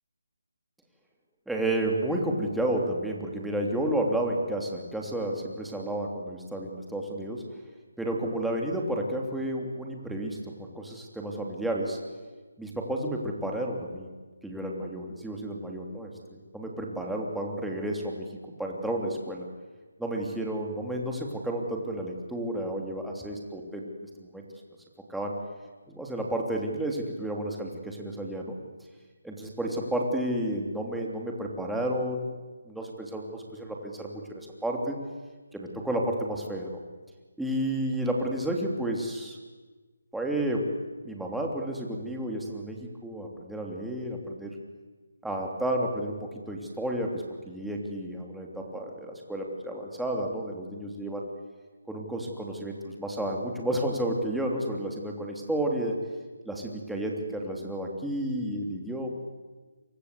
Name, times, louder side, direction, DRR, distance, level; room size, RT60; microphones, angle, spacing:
voice 1, 1.5-7.5 8.0-12.0 12.6-14.1 14.4-19.5 20.0-24.4 25.1-25.3 25.9-28.6 29.2-32.4 32.7-35.0 35.5-36.8 37.4-39.4 40.1-40.7 41.0-44.6 45.2-51.2 51.9-56.0 56.4-59.1, right 1 dB, ahead, 0 dB, 3.1 m, -31 dB
29.0 x 25.0 x 8.3 m, 1.3 s
figure-of-eight pair, 160°, 0 cm